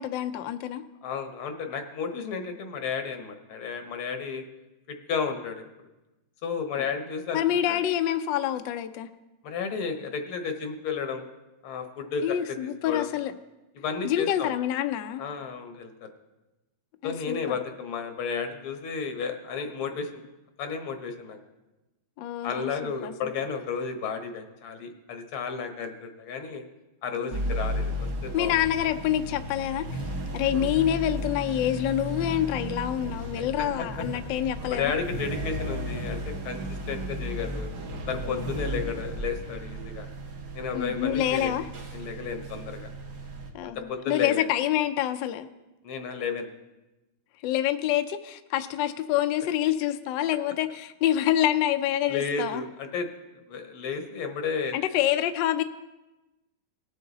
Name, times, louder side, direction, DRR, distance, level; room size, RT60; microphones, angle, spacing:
voice 1, 0.0-0.8 7.3-9.1 12.2-13.3 14.0-15.2 17.0-17.6 22.2-23.1 27.2-27.4 28.3-29.9 30.3-34.9 38.3-38.5 40.7-41.7 43.5-45.5 47.4-52.6 54.7-55.6, left 11 dB, 75° left, 9 dB, 1.2 m, -27 dB
voice 2, 1.0-4.4 5.1-5.6 6.4-7.8 9.4-11.2 11.6-13.1 13.8-14.5 15.2-16.1 17.0-20.2 20.6-21.4 22.4-26.6 27.0-28.6 30.5-30.7 33.6-33.7 34.7-37.7 38.1-40.1 40.5-41.5 41.9-42.9 43.9-44.5 45.8-46.5 52.1-53.1 53.5-54.8, left 5 dB, 90° left, 6 dB, 1.9 m, -32 dB
sound 1, 27.3-43.5, equal, 55° right, 1.7 m, -34 dB
19.0 x 6.6 x 4.0 m, 1.0 s
omnidirectional pair, 2.2 m